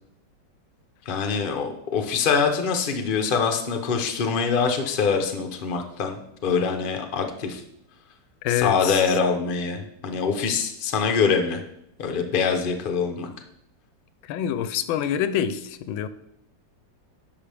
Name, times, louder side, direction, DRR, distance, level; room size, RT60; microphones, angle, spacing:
voice 1, 1.1-7.6 8.5-11.6 12.0-13.3, left 5 dB, 45° left, 4 dB, 0.6 m, -24 dB
voice 2, 8.4-9.0 14.3-16.1, left 10 dB, 85° left, 12 dB, 1.4 m, -26 dB
10.5 x 5.9 x 3.5 m, 0.76 s
omnidirectional pair, 2.1 m